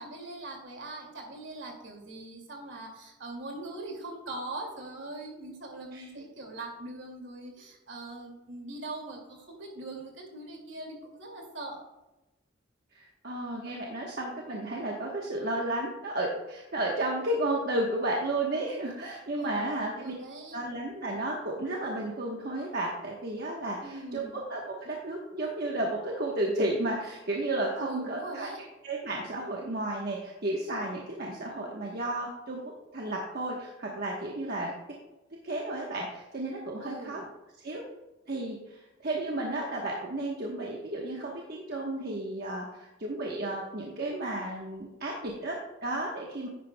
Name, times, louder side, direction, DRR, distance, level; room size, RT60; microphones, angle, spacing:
voice 1, 0.0-11.8 19.3-20.6 23.8-24.4 27.8-28.6 36.8-37.2, right 2 dB, 70° right, 1 dB, 2.3 m, -41 dB
voice 2, 5.9-6.2 12.9-20.1 20.5-28.5 28.8-32.6 32.9-34.7 35.4-37.2 37.6-37.8 38.3-42.6 43.0-46.5, right 1 dB, 55° right, -1 dB, 1.1 m, -33 dB
9.9 x 9.8 x 2.2 m, 1.0 s
head